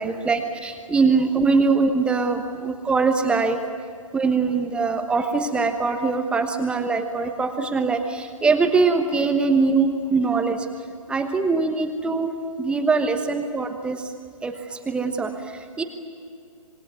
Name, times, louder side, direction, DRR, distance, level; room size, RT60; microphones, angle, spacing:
voice 1, 0.0-3.6 4.1-10.7 11.1-12.3 12.6-14.1 14.4-15.8, right 4 dB, 5° right, 6 dB, 1.1 m, -22 dB
26.5 x 21.0 x 9.5 m, 2.3 s
figure-of-eight pair, 135°, 18 cm